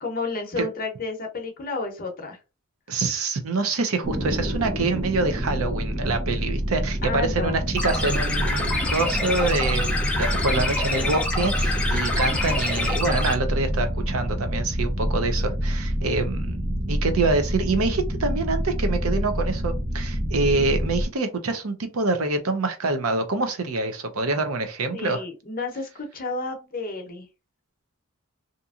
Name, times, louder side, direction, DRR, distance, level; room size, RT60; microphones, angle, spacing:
voice 1, 0.0-2.4 7.0-7.6 24.9-27.3, left 3 dB, 40° left, 0.7 m, -31 dB
voice 2, 2.9-25.2, right 3 dB, 80° right, 0.6 m, -26 dB
sound 1, 4.0-21.0, equal, 35° right, 0.7 m, -27 dB
sound 2, 7.8-13.3, left 2 dB, 5° left, 0.4 m, -27 dB
2.8 x 2.5 x 2.4 m
head